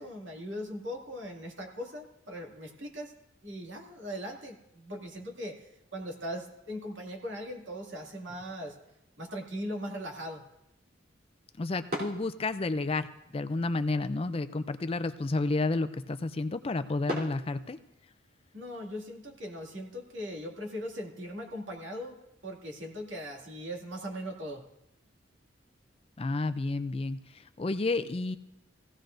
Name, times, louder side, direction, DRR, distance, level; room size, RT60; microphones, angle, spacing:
voice 1, 0.0-3.1 3.4-8.8 9.2-10.4 18.5-24.6, equal, 75° right, 0 dB, 2.3 m, -39 dB
sound 1, 8.1-18.2, equal, 55° right, 3.4 m, -45 dB
voice 2, 11.6-13.1 13.3-17.8 26.2-28.4, left 3 dB, 30° left, 11 dB, 0.4 m, -31 dB
18.5 x 16.0 x 2.6 m, 0.86 s
head